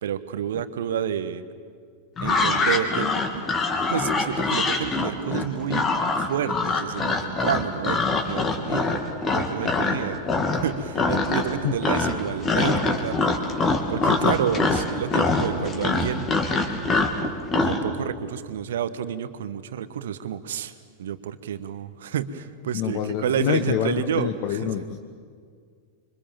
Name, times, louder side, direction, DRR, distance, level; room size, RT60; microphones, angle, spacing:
voice 1, 0.0-1.4 2.2-3.4 3.9-5.9 6.3-8.0 8.3-9.0 9.3-10.2 10.6-13.5 13.9-16.3 17.6-20.7 21.0-24.8, right 9 dB, 60° right, 12 dB, 1.3 m, -29 dB
sound 1, 2.2-10.0 10.3-10.7 10.9-11.6 11.8-17.8, left 3 dB, 25° left, 2.8 m, -23 dB
voice 2, 22.7-25.0, left 10 dB, 45° left, 7 dB, 1.2 m, -27 dB
26.5 x 25.0 x 7.4 m, 2.1 s
figure-of-eight pair, 90°, 0 cm